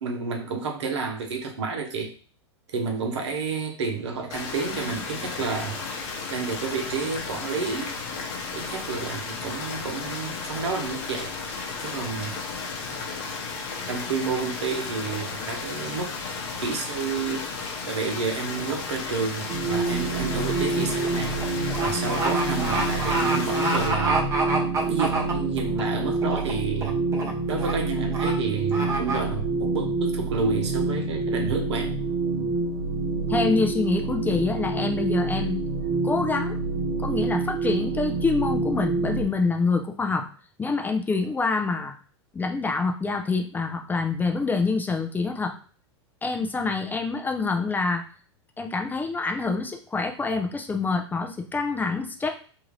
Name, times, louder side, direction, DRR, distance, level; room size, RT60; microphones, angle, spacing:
voice 1, 0.0-2.1 2.7-5.8 6.3-8.0 8.5-11.3 11.8-12.4 12.9-13.0 13.9-16.1 16.6-17.4 17.9-21.4 21.8-24.2 24.8-27.0 27.5-31.9, right 5 dB, 75° right, 2 dB, 0.8 m, -30 dB
sound 1, 4.3-23.9, left 4 dB, 50° left, 0.9 m, -34 dB
sound 2, 19.5-39.3, right 3 dB, 55° right, 0.7 m, -27 dB
sound 3, 19.7-20.0 20.3-25.8 26.2-26.5 26.8-27.3 27.6-27.7 28.1-28.3 28.7-29.2, right 2 dB, 20° right, 0.7 m, -27 dB
voice 2, 33.3-35.6 36.0-36.6 37.0-40.2 40.6-41.9 42.3-45.5 46.2-48.0 48.6-52.3, left 4 dB, 10° left, 4 dB, 0.4 m, -26 dB
2.7 x 2.4 x 3.1 m, 0.40 s
hypercardioid pair, 105°, 15 cm